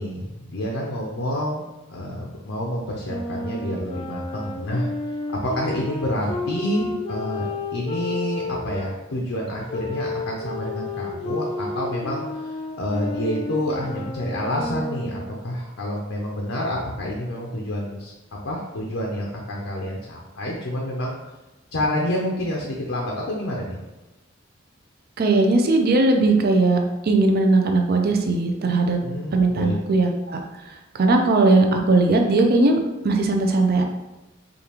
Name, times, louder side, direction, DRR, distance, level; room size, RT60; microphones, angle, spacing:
voice 1, 0.0-1.6 1.9-4.9 5.3-18.1 18.4-21.2 21.7-23.8 29.0-29.8, left 1 dB, 70° left, -1 dB, 0.6 m, -28 dB
Wind instrument woodwind instrument, 3.0-8.9 9.7-15.4, left 3 dB, 30° left, 0.5 m, -31 dB
voice 2, 25.2-29.0 29.3-30.4 30.9-33.8, right 2 dB, 50° right, 3 dB, 0.5 m, -19 dB
5.0 x 2.4 x 2.9 m, 1.0 s
head